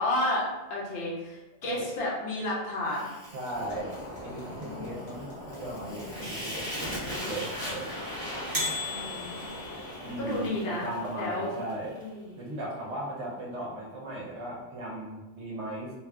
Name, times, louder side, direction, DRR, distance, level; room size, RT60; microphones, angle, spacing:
voice 1, 0.0-3.1 4.3-5.1 5.7-6.3 6.8-7.5 8.9-9.6 10.2-11.6 12.0-12.4, left 1 dB, 60° left, -5 dB, 0.9 m, -33 dB
voice 2, 1.6-2.0 3.3-3.9 4.2-6.7 7.2-7.9 10.0-11.9 12.4-15.9, right 1 dB, 75° right, -4 dB, 1.0 m, -37 dB
Fire, 2.9-12.1, equal, 20° left, 0.8 m, -40 dB
sound 1, 3.2-10.2, left 2 dB, 50° right, 0.8 m, -36 dB
sound 2, 3.5-10.5, left 1 dB, 85° left, 1.0 m, -44 dB
2.7 x 2.4 x 2.3 m, 1.1 s
omnidirectional pair, 1.2 m